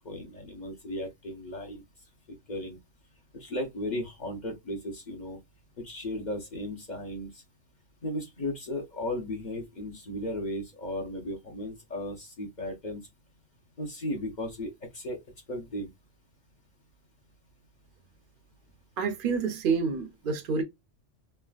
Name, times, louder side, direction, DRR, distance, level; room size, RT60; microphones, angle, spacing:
voice 1, 0.0-1.8 2.5-2.8 3.3-5.4 5.8-7.3 8.0-13.0 13.8-15.2 15.5-15.9, left 1 dB, 45° left, 0.8 m, -35 dB
voice 2, 19.0-20.6, right 5 dB, 55° right, 0.6 m, -28 dB
3.3 x 2.1 x 2.3 m
omnidirectional pair, 1.3 m